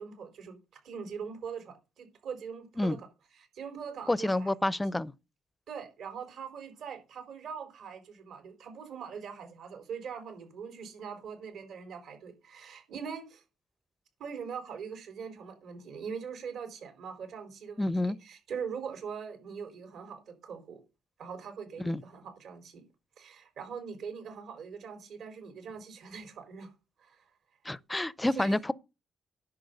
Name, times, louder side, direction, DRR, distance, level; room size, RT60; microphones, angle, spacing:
voice 1, 0.0-3.1 3.3-4.5 5.7-13.4 14.2-20.8 21.2-22.8 23.2-26.7 27.0-27.3 28.3-28.6, right 6 dB, 70° right, 4.4 m, -42 dB
voice 2, 4.1-5.1 17.8-18.2 21.8-22.0 27.6-28.7, left 1 dB, 10° left, 0.6 m, -28 dB
10.5 x 7.5 x 6.9 m
cardioid pair, 90°, 0 cm